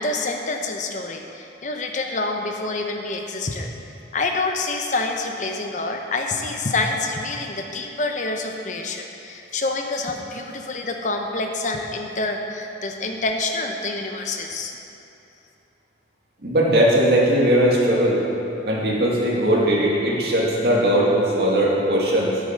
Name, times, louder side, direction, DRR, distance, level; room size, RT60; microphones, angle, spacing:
voice 1, 0.0-3.7 4.1-14.7, left 3 dB, 45° left, 3 dB, 0.9 m, -27 dB
voice 2, 16.4-18.2 18.6-22.4, equal, 60° right, -4 dB, 2.0 m, -19 dB
10.5 x 8.3 x 5.2 m, 3.0 s
head